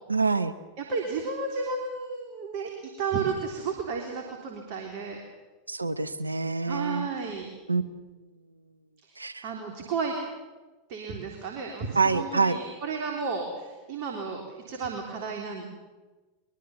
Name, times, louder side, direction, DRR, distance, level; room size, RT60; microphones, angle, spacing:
voice 1, 0.1-0.5 5.7-7.1 7.7-7.9 9.2-9.4 11.9-12.6, right 4 dB, 85° right, 14 dB, 1.1 m, -26 dB
voice 2, 0.8-2.7 3.0-5.2 6.7-7.5 9.4-10.2 10.9-15.7, right 5 dB, 50° right, 2 dB, 3.5 m, -32 dB
22.0 x 22.0 x 7.2 m, 1.2 s
figure-of-eight pair, 85°, 0 cm